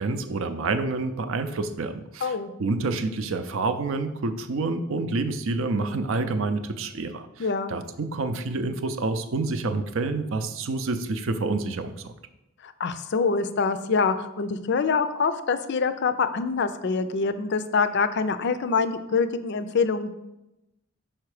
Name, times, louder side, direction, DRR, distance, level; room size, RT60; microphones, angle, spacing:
voice 1, 0.0-12.1, right 3 dB, 65° right, 9 dB, 0.5 m, -28 dB
voice 2, 2.2-2.5 7.4-7.7 12.6-20.1, left 5 dB, 50° left, 12 dB, 0.4 m, -25 dB
5.7 x 4.4 x 4.8 m, 0.92 s
head